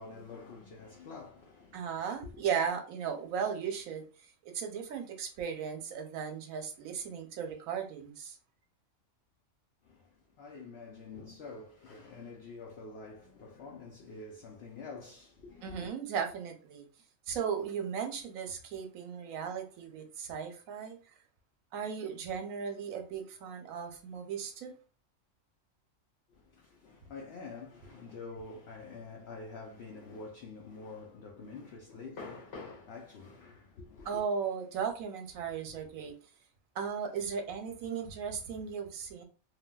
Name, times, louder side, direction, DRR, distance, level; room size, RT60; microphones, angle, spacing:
voice 1, 0.0-2.5 9.8-15.9 26.3-34.2, left 4 dB, 60° left, 0.7 m, -47 dB
voice 2, 1.7-4.1 4.4-8.4 15.6-16.9 17.3-21.0 21.7-24.7 34.1-36.1 36.7-39.2, right 7 dB, 90° right, 1.1 m, -36 dB
3.2 x 2.2 x 2.2 m
omnidirectional pair, 1.4 m